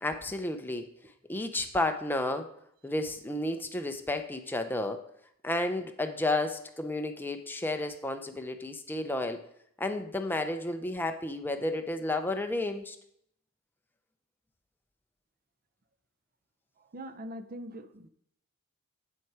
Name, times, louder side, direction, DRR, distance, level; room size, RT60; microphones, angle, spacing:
voice 1, 0.0-2.5 2.8-5.0 5.4-9.4 9.8-13.0, left 2 dB, 10° left, 6 dB, 0.6 m, -32 dB
voice 2, 16.8-18.1, equal, 40° right, 12 dB, 0.6 m, -42 dB
7.8 x 7.3 x 4.8 m, 0.72 s
head